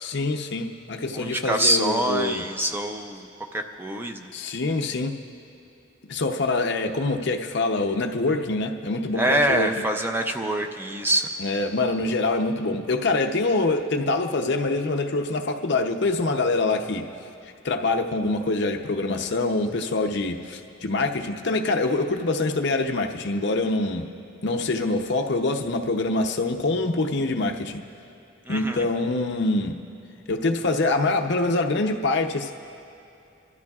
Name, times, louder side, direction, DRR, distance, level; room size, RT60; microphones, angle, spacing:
voice 1, 0.0-2.5 4.3-5.2 6.1-9.8 11.4-17.1 17.6-24.1 24.4-27.8 28.5-29.7 30.3-32.5, left 2 dB, 60° left, 4 dB, 0.7 m, -25 dB
voice 2, 1.1-3.3 3.5-4.3 9.2-11.3 28.5-28.9, right 1 dB, 10° right, 4 dB, 0.5 m, -25 dB
29.5 x 13.0 x 2.4 m, 2.7 s
head